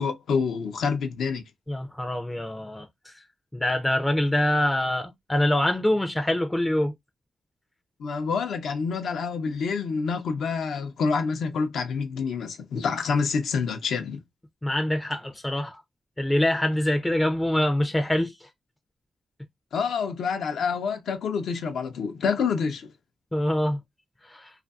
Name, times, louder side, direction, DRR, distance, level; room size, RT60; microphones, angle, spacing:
voice 1, 0.0-1.4 8.0-14.2 19.7-22.9, left 5 dB, 80° left, 0.6 m, -27 dB
voice 2, 1.7-3.2 3.5-6.9 14.6-15.8 16.2-18.3 23.3-23.8 24.3-24.5, left 1 dB, 10° left, 0.4 m, -25 dB
2.6 x 2.5 x 2.2 m
cardioid pair, 85°, 0 cm